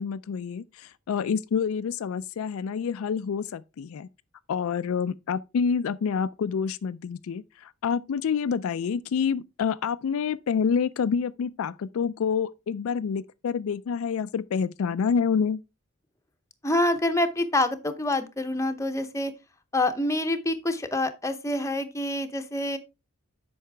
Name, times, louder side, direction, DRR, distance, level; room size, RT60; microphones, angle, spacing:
voice 1, 0.0-4.1 4.5-15.6, left 6 dB, 70° left, 0.4 m, -27 dB
voice 2, 16.6-19.3 19.7-22.8, left 1 dB, 15° left, 0.7 m, -26 dB
8.4 x 5.6 x 3.3 m
head